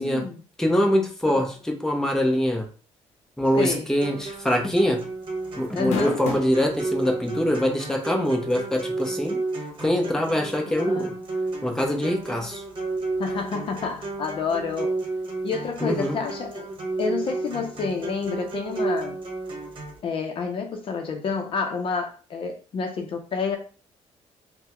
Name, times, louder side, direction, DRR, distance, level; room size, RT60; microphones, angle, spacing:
voice 1, 0.0-0.4 1.3-1.5 3.6-3.9 5.7-6.2 10.7-11.2 13.2-14.9 15.4-16.7 17.0-19.2 20.0-23.6, left 5 dB, 50° left, 0.6 m, -29 dB
voice 2, 0.6-2.6 3.4-5.0 5.6-9.4 9.8-11.1 11.6-12.6 15.8-16.2, equal, 5° left, 0.7 m, -24 dB
sound 1, 3.9-4.2 4.5-4.6 5.6-6.6 7.3-7.4 9.0-9.1, left 4 dB, 90° left, 0.6 m, -30 dB
sound 2, 4.0-20.0, right 3 dB, 45° right, 1.0 m, -32 dB
3.3 x 2.2 x 2.9 m
cardioid pair, 110°, 12 cm